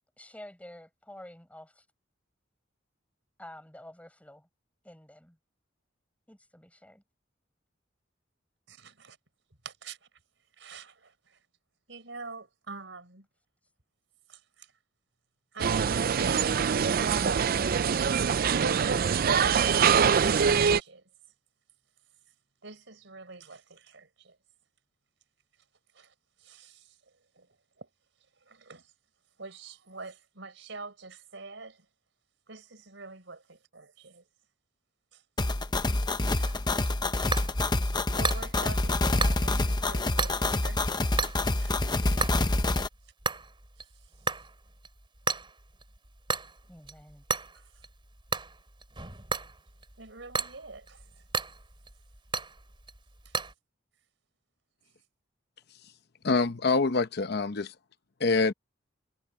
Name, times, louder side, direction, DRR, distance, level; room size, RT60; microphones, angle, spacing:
voice 1, 0.2-1.7 3.4-4.5 4.8-5.4 6.3-7.0 46.7-47.2, left 1 dB, 10° left, 7.3 m, -49 dB
voice 2, 8.7-9.2 9.6-10.0 10.6-11.4 11.9-13.3 14.3-14.7 15.5-17.6 18.5-19.7 20.3-21.1 22.6-24.4 25.9-26.1 26.4-27.0 27.4-27.5 27.8-27.9 28.4-28.9 29.4-31.9 32.5-34.2 35.1-35.2 35.8-36.5 37.5-37.6 38.1-41.0 41.5-41.8 47.5-47.8 50.0-51.0 53.2-53.3, right 3 dB, 80° right, 4.4 m, -43 dB
sound 1, 15.6-20.8, right 7 dB, 50° right, 0.4 m, -24 dB
sound 2, 35.4-42.9, left 2 dB, 25° left, 0.9 m, -27 dB
sound 3, 36.4-53.5, right 4 dB, 25° right, 3.5 m, -36 dB
voice 3, 56.2-57.7 58.2-58.5, left 3 dB, 60° left, 0.8 m, -25 dB
head